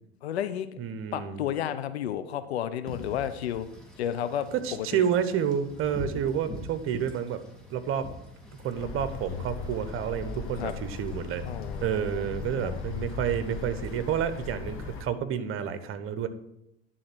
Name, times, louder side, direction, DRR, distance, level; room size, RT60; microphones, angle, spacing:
voice 1, 0.2-0.7 1.1-3.7 4.0-5.0 10.6-10.7 11.4-12.8, left 10 dB, 80° left, 11 dB, 0.6 m, -32 dB
voice 2, 0.8-1.4 4.6-7.4 7.7-8.1 8.4-11.4 11.8-16.3, right 8 dB, 40° right, 11 dB, 1.0 m, -30 dB
Wind / Rain, 2.9-14.5, left 1 dB, ahead, 2.0 m, -46 dB
sound 1, 8.7-15.0, left 4 dB, 40° left, 1.7 m, -38 dB
10.5 x 3.8 x 6.1 m, 0.82 s
hypercardioid pair, 80°, 32 cm